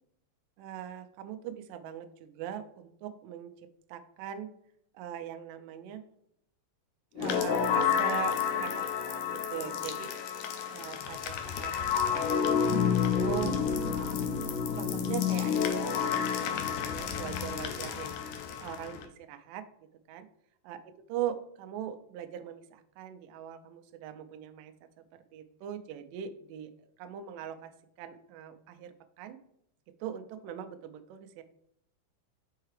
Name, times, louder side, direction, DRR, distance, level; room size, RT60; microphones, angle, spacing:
voice 1, 0.6-3.5 3.9-4.5 4.9-6.0 7.2-8.9 9.5-10.1 10.7-11.7 12.1-12.5 13.0-14.2 14.7-18.1 18.6-19.7 20.1-20.2 20.6-24.7 25.3-27.7 28.0-29.4 30.0-31.4, right 9 dB, 90° right, 8 dB, 1.9 m, -40 dB
sound 1, 7.2-19.0, left 7 dB, 80° left, 1.9 m, -30 dB
5.6 x 5.6 x 3.2 m, 0.73 s
omnidirectional pair, 4.4 m